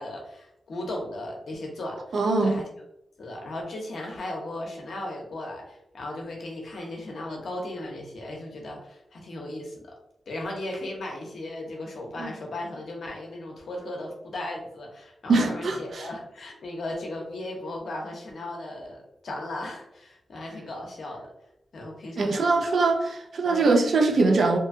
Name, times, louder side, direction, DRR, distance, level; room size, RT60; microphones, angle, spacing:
voice 1, 0.0-2.7 3.2-9.9 10.3-21.3 21.7-22.7 23.4-23.7, left 1 dB, 75° left, 0.7 m, -36 dB
voice 2, 2.1-2.6 12.2-12.3 15.3-16.1 22.2-24.6, right 3 dB, 75° right, 0.4 m, -22 dB
2.6 x 2.2 x 2.5 m
cardioid pair, 55°, 0 cm